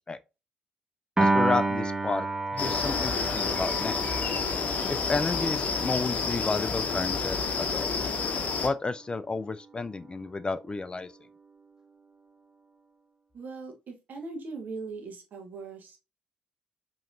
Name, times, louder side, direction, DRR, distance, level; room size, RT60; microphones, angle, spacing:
voice 1, 1.2-2.3 2.5-4.1 4.9-8.1 8.6-11.1, left 3 dB, 25° left, 0.3 m, -31 dB
Piano, 1.2-7.6, right 2 dB, 15° right, 0.7 m, -31 dB
sound 1, 2.6-8.7, left 5 dB, 45° left, 0.7 m, -29 dB
voice 2, 13.3-16.0, right 4 dB, 50° right, 1.1 m, -40 dB
4.9 x 2.9 x 2.4 m
figure-of-eight pair, 40°, 4 cm